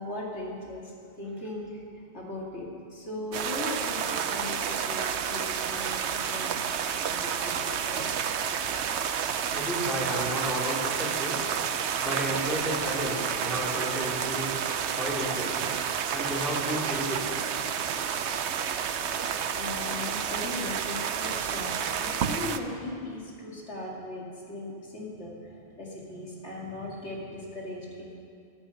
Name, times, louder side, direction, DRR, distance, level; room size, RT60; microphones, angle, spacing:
voice 1, 0.0-6.6 7.1-8.1 18.6-18.7 19.5-28.3, left 2 dB, 85° left, -3 dB, 2.7 m, -38 dB
sound 1, 3.3-22.6, right 7 dB, 85° right, 1.0 m, -30 dB
voice 2, 9.5-11.4 12.0-14.5 14.9-15.6 16.1-17.2, equal, ahead, -6 dB, 3.4 m, -32 dB
14.5 x 13.5 x 5.7 m, 2.4 s
omnidirectional pair, 1.1 m